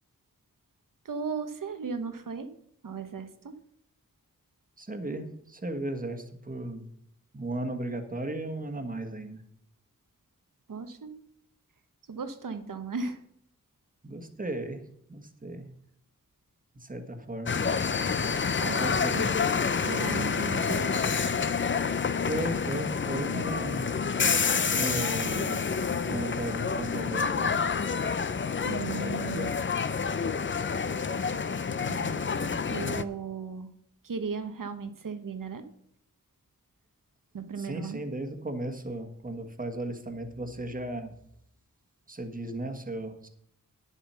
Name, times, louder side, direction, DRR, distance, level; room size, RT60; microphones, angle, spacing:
voice 1, 1.0-2.5 2.8-3.5 10.7-11.1 12.1-13.2 18.6-18.8 19.9-20.9 28.6-29.5 31.9-33.7 34.0-35.6 37.3-38.0, right 5 dB, 70° right, 9 dB, 1.1 m, -36 dB
voice 2, 4.8-6.9 7.3-9.4 14.0-14.8 15.1-15.7 16.7-17.6 18.6-19.4 22.3-23.9 24.5-25.6 26.0-27.5 37.6-41.1 42.1-43.3, right 2 dB, 25° right, 6 dB, 1.4 m, -35 dB
sound 1, 17.5-33.0, left 5 dB, 35° left, 0.5 m, -28 dB
10.0 x 7.4 x 5.6 m, 0.73 s
wide cardioid pair, 95°, 33 cm